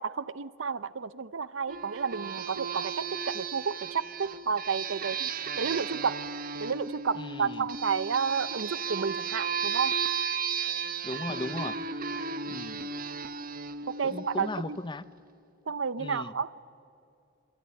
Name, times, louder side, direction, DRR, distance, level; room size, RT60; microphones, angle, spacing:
voice 1, 0.0-6.2 6.6-9.9 13.9-14.8 15.7-16.5, right 6 dB, 75° right, 0.7 m, -31 dB
sound 1, 1.7-14.9, right 6 dB, 45° right, 1.1 m, -34 dB
voice 2, 7.1-7.7 11.0-11.8 12.5-12.9 14.0-15.1 16.0-16.3, left 2 dB, 25° left, 0.7 m, -37 dB
27.5 x 22.5 x 9.6 m
head